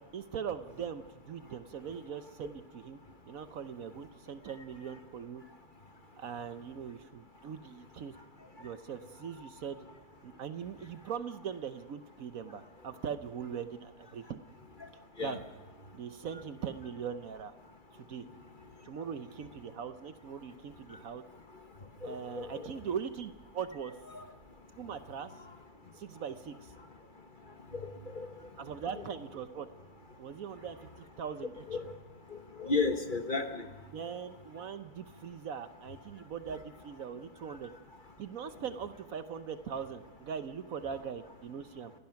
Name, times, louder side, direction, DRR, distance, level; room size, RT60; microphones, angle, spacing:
voice 1, 0.1-3.0 3.3-5.4 6.2-8.1 8.6-9.8 10.2-14.4 15.2-15.4 15.9-17.5 17.9-18.3 18.8-21.2 22.0-23.9 24.7-25.3 25.9-26.7 28.6-29.7 30.2-31.6 33.9-37.7 38.2-41.9, right 7 dB, 65° right, 11 dB, 1.1 m, -41 dB
voice 2, 22.0-22.7 24.1-24.2 27.7-28.3 31.7-31.9 32.3-33.7, left 3 dB, 35° left, 6 dB, 1.3 m, -34 dB
28.0 x 16.0 x 5.8 m, 1.2 s
omnidirectional pair, 1.7 m